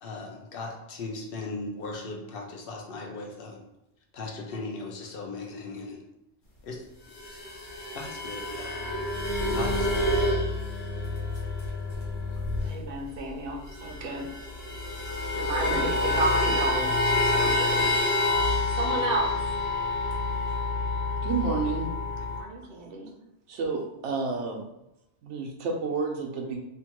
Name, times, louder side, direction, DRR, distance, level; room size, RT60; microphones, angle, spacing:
voice 1, 0.0-3.6 4.1-6.0 6.6-6.8 7.9-8.8 9.5-10.2, left 3 dB, 60° left, 2 dB, 0.7 m, -38 dB
sound 1, 7.1-12.9 13.2-13.3 13.5-22.4, left 2 dB, 80° left, 1.2 m, -28 dB
voice 2, 12.7-14.3 15.4-17.0 17.3-17.8 18.7-19.3 22.3-23.1, right 3 dB, 60° right, 1 dB, 0.7 m, -32 dB
voice 3, 21.2-21.9 23.5-24.7 25.2-26.6, right 4 dB, 85° right, 2 dB, 0.9 m, -30 dB
2.8 x 2.2 x 2.9 m, 0.88 s
omnidirectional pair, 1.2 m